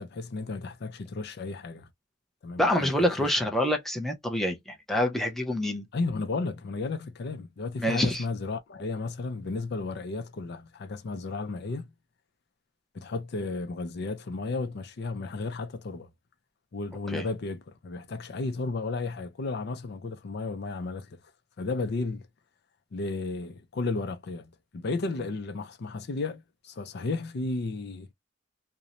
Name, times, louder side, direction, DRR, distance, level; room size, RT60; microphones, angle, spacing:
voice 1, 0.0-1.9 2.4-2.9 3.2-3.3 5.9-11.9 12.9-16.1 16.7-21.2 21.6-22.3 22.9-28.1, left 3 dB, 55° left, 0.5 m, -33 dB
voice 2, 2.6-5.8 7.8-8.2 17.1-17.3, left 1 dB, ahead, 0.6 m, -26 dB
2.6 x 2.1 x 2.8 m
head